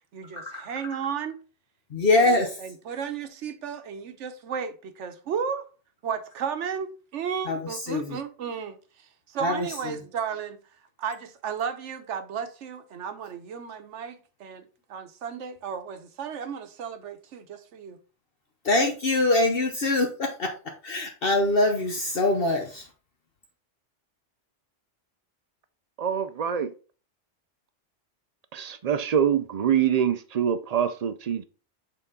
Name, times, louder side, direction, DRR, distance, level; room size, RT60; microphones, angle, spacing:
voice 1, 0.1-1.4 2.2-5.6 6.0-8.8 9.3-10.6 11.0-18.0, right 7 dB, 75° right, 1.1 m, -34 dB
voice 2, 1.9-2.5 7.5-7.6 7.9-8.0 9.4-9.7 18.6-20.5 20.8-22.8, left 2 dB, 55° left, 1.0 m, -23 dB
voice 3, 26.0-26.7 28.5-31.4, right 8 dB, 55° right, 0.4 m, -25 dB
7.0 x 3.9 x 3.7 m
omnidirectional pair, 1.2 m